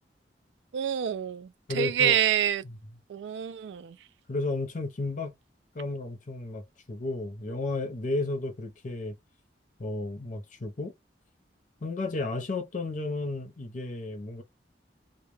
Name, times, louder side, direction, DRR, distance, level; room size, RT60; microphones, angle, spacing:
voice 1, 0.7-2.6 3.1-4.0, right 9 dB, 85° right, 0.3 m, -27 dB
voice 2, 1.7-2.2 4.3-5.3 5.7-9.1 9.8-10.9 11.8-14.4, left 2 dB, 45° left, 0.7 m, -33 dB
2.2 x 2.1 x 3.2 m
head